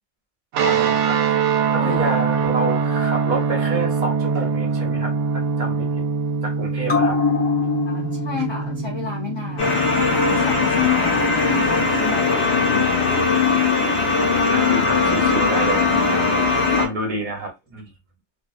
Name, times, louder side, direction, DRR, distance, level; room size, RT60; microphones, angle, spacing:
sound 1, 0.5-10.9, right 5 dB, 85° right, 0.9 m, -23 dB
voice 1, 0.6-1.2 1.7-5.9 6.4-7.2 13.8-14.1 14.5-16.3 16.8-17.9, right 2 dB, 45° right, 0.8 m, -28 dB
voice 2, 1.8-2.2 7.9-13.0, left 7 dB, 50° left, 0.3 m, -31 dB
sound 2, 6.8-13.8 14.1-14.2, left 3 dB, 25° left, 0.9 m, -28 dB
sound 3, 9.6-16.9, left 4 dB, 70° left, 1.1 m, -19 dB
2.5 x 2.3 x 2.4 m
omnidirectional pair, 1.2 m